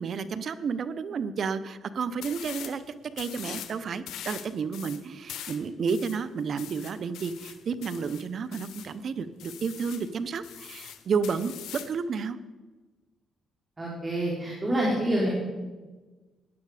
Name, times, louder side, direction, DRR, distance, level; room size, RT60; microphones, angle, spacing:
voice 1, 0.0-2.8 3.2-12.4, right 5 dB, 55° right, 14 dB, 0.8 m, -31 dB
sound 1, 2.2-2.8 3.1-3.7 4.1-8.9 9.4-10.1 10.4-12.0, left 11 dB, 80° left, 1.1 m, -42 dB
voice 2, 13.8-15.3, right 1 dB, 25° right, -4 dB, 3.9 m, -27 dB
16.5 x 11.0 x 5.0 m, 1.3 s
cardioid pair, 90°, 0 cm